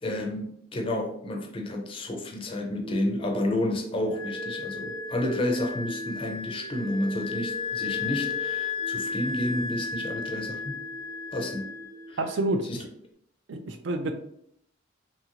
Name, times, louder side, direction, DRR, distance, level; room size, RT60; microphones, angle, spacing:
voice 1, 0.0-10.8 11.3-11.7 12.1-12.2 12.7-12.8, left 1 dB, 25° left, 3 dB, 0.4 m, -30 dB
sound 1, 2.8-12.8, right 2 dB, 30° right, 0.8 m, -42 dB
Wind instrument woodwind instrument, 4.1-12.4, left 5 dB, 90° left, 0.6 m, -34 dB
voice 2, 12.2-12.9 13.5-14.1, right 2 dB, 60° right, 7 dB, 0.4 m, -28 dB
2.8 x 2.5 x 2.8 m, 0.70 s
head